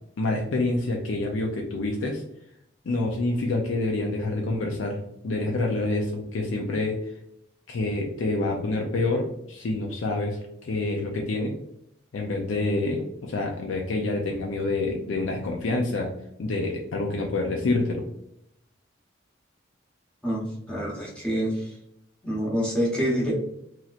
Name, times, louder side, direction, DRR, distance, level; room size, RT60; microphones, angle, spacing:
voice 1, 0.2-2.2 2.8-5.0 5.2-7.1 7.7-11.5 12.1-16.1 16.4-18.0, left 2 dB, 90° left, 0 dB, 0.4 m, -27 dB
voice 2, 20.2-21.8 22.2-23.3, equal, 5° left, -5 dB, 0.8 m, -27 dB
3.1 x 2.8 x 2.4 m, 0.77 s
head